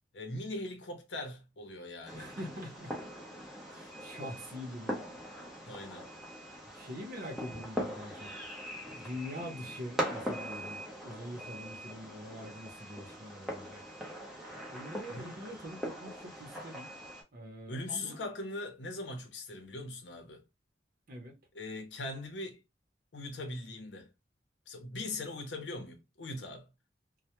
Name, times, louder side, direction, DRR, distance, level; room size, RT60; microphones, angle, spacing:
voice 1, 0.1-2.3 5.7-6.1 15.1-15.4 17.7-20.4 21.5-22.6 23.1-24.1 24.7-26.7, left 2 dB, 80° left, 0.7 m, -40 dB
Fireworks, 2.0-17.2, equal, ahead, 0.6 m, -41 dB
voice 2, 2.1-2.9 3.6-5.0 6.7-8.3 8.9-14.0 14.7-16.9 17.3-18.2 21.1-21.4, equal, 55° right, 0.7 m, -44 dB
2.1 x 2.1 x 2.9 m
head